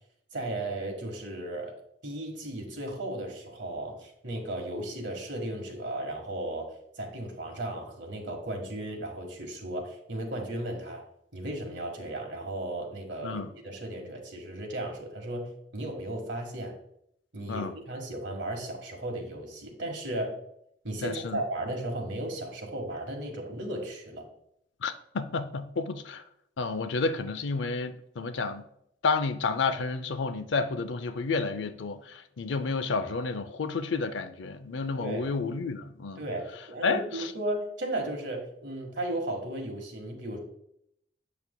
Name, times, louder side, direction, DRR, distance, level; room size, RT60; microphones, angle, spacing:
voice 1, 0.3-1.7 2.0-11.0 11.3-16.7 17.3-20.4 20.8-24.3 35.0-35.3 36.1-40.4, right 1 dB, 85° right, 1.5 m, -35 dB
voice 2, 21.0-21.4 24.8-26.2 26.6-28.6 29.0-36.2 36.8-37.3, left 4 dB, 90° left, 0.5 m, -30 dB
8.3 x 5.9 x 2.2 m
head